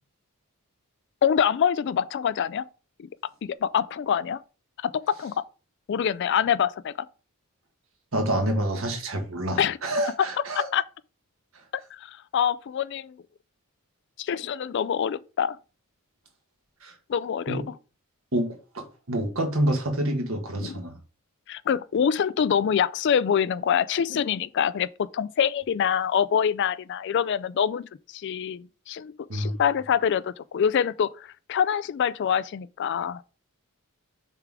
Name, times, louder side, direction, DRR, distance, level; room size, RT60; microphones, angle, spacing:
voice 1, 1.2-2.7 3.0-3.1 3.4-4.4 4.8-5.3 5.9-6.9 9.6-9.8 10.2-10.3 10.5-10.8 11.9-13.1 14.2-15.6 17.1-17.6 20.6-20.8 21.5-33.2, left 8 dB, 50° left, 0.3 m, -25 dB
voice 2, 8.1-10.7 16.8-16.9 17.5-17.7 18.3-21.0 29.3-29.5, right 1 dB, 65° right, 1.6 m, -27 dB
6.6 x 3.7 x 4.7 m
head